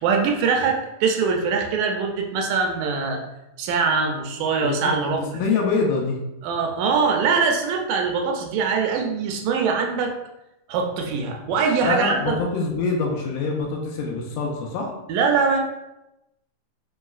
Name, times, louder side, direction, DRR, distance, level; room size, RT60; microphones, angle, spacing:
voice 1, 0.0-3.2 3.6-5.2 6.4-10.1 10.7-12.4 15.1-15.6, right 5 dB, 80° right, 2 dB, 2.1 m, -22 dB
voice 2, 4.6-6.2 11.8-14.9, left 4 dB, 80° left, 0 dB, 2.1 m, -25 dB
5.3 x 3.0 x 2.4 m, 0.93 s
omnidirectional pair, 3.9 m